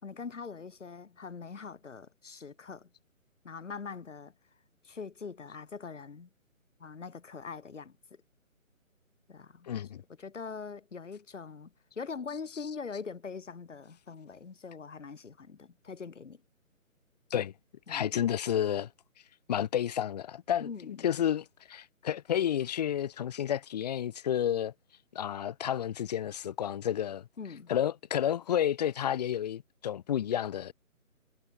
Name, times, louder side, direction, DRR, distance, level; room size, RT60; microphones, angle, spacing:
voice 1, 0.0-2.9 3.4-4.3 4.8-6.3 6.8-8.2 9.3-9.7 10.2-16.4 17.9-18.1 20.6-21.1 27.4-27.7, left 5 dB, 60° left, 4.5 m, -42 dB
voice 2, 9.7-10.0 17.3-17.5 17.9-18.9 19.5-24.7 25.1-27.3 27.7-30.7, left 10 dB, 30° left, 2.1 m, -31 dB
figure-of-eight pair, 150°, 42 cm